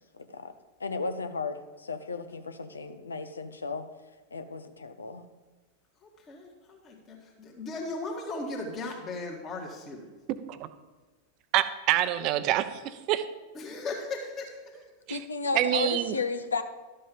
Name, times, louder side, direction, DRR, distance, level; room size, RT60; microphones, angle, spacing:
voice 1, 0.2-0.5 0.8-3.8 4.3-5.3 15.1-16.6, left 4 dB, 75° left, 10 dB, 0.8 m, -34 dB
voice 2, 6.0-10.1 13.5-14.9, left 2 dB, 25° left, -1 dB, 1.9 m, -37 dB
voice 3, 11.5-13.2 15.1-15.2 15.5-16.2, right 13 dB, 40° right, 12 dB, 0.7 m, -26 dB
12.0 x 7.6 x 5.3 m, 1.3 s
figure-of-eight pair, 90°, 0 cm